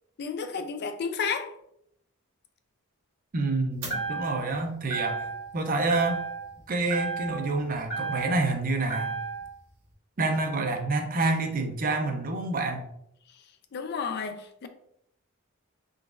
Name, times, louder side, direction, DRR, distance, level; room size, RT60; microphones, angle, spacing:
voice 1, 0.2-1.6 13.3-13.4 13.7-14.7, left 5 dB, 50° left, 0.4 m, -32 dB
voice 2, 3.3-5.3 5.5-6.2 6.7-9.1 10.2-12.8, right 3 dB, 40° right, 0.5 m, -27 dB
sound 1, 3.8-4.6 4.9-5.6 5.9-6.6 6.9-8.5 8.9-9.5, right 4 dB, 80° right, 1.5 m, -33 dB
3.8 x 3.4 x 2.4 m
head